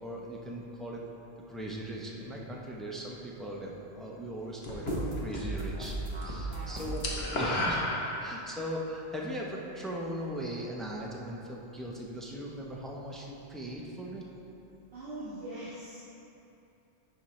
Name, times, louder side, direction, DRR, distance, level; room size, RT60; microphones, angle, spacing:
voice 1, 0.0-1.0 1.5-4.9 5.1-7.8 8.2-14.2, equal, ahead, -3 dB, 0.4 m, -39 dB
sound 1, 4.6-5.6 5.9-8.6, left 1 dB, 65° left, 1.1 m, -32 dB
sound 2, 4.8-7.2, right 3 dB, 30° right, 0.8 m, -37 dB
voice 2, 6.5-6.9 14.9-16.0, right 1 dB, 60° right, -12 dB, 1.5 m, -42 dB
10.5 x 4.3 x 3.1 m, 2.8 s
omnidirectional pair, 1.2 m